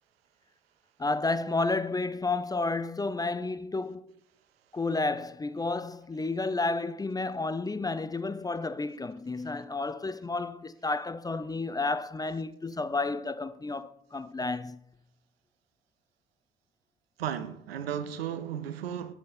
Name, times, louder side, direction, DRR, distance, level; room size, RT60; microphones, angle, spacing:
voice 1, 1.0-4.2 4.7-14.8, left 3 dB, 15° left, 0.4 m, -31 dB
voice 2, 17.2-19.1, right 9 dB, 85° right, 0.5 m, -34 dB
7.0 x 6.6 x 4.1 m
hypercardioid pair, 50°, 29 cm